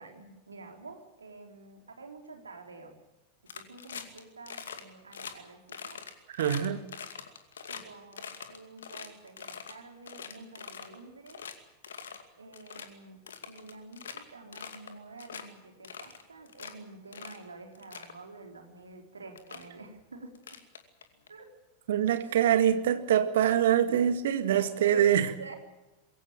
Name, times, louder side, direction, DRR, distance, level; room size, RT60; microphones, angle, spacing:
voice 1, 0.0-3.0 3.5-6.0 7.7-11.5 12.4-20.3 21.3-21.5 22.2-22.4 23.9-24.0 24.5-25.5, right 3 dB, 75° right, 3.8 m, -48 dB
sound 1, 3.5-4.2 4.5-4.8 5.1-5.3 5.7-7.8 8.1-9.7 10.1-11.0 11.3-11.5 11.8-12.2 12.5-12.9 13.3-14.2 14.5-14.9 15.2-15.4 15.8-16.7 17.1-17.4 17.7-18.1 18.9-19.0 19.4-19.6 20.3-21.3, left 7 dB, 65° left, 2.4 m, -43 dB
voice 2, 6.4-6.8 21.9-25.3, right 10 dB, 60° right, 1.9 m, -24 dB
22.5 x 17.0 x 8.9 m
figure-of-eight pair, 90°, 0 cm